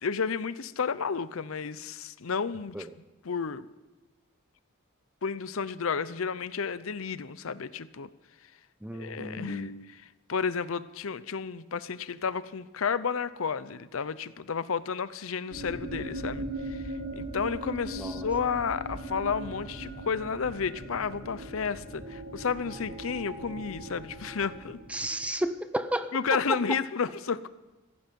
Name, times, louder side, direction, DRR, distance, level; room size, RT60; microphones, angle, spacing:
voice 1, 0.0-2.9 3.2-3.7 5.2-8.1 8.9-10.0 10.3-24.8 26.1-27.5, left 6 dB, 70° left, 15 dB, 0.6 m, -32 dB
voice 2, 8.8-9.7 18.0-18.3 24.9-26.1, right 1 dB, 5° right, 11 dB, 0.7 m, -33 dB
sound 1, 15.5-25.3, right 1 dB, 65° right, 4.7 m, -39 dB
16.5 x 14.5 x 5.3 m, 1.1 s
head